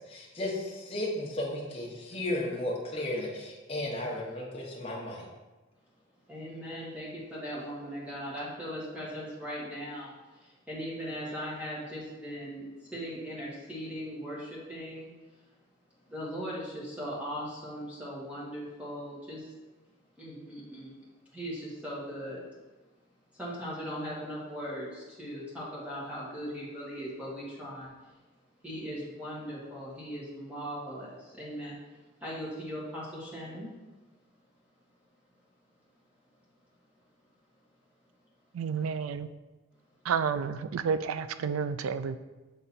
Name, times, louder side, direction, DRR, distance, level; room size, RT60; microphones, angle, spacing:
voice 1, 0.1-5.2, left 1 dB, 25° left, -3 dB, 1.0 m, -34 dB
voice 2, 6.3-15.1 16.1-19.5 20.2-20.9 21.3-22.4 23.3-27.9 28.6-31.8 32.2-33.7, equal, 5° right, -7 dB, 1.5 m, -39 dB
voice 3, 38.5-39.3 40.0-42.2, right 6 dB, 80° right, 12 dB, 0.3 m, -30 dB
7.2 x 3.8 x 4.2 m, 1.2 s
head